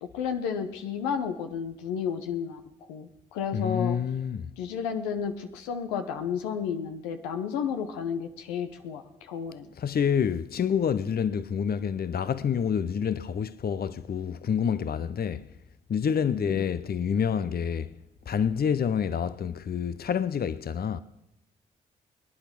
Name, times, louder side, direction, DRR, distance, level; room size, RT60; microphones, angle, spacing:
voice 1, 0.0-2.6 2.9-4.0 4.6-9.7 16.3-16.6, left 7 dB, 90° left, 0.9 m, -32 dB
voice 2, 3.5-4.5 9.8-15.5 15.9-17.9 18.3-21.0, left 7 dB, 50° left, 0.7 m, -28 dB
21.5 x 10.0 x 6.1 m
hypercardioid pair, 40°, 21 cm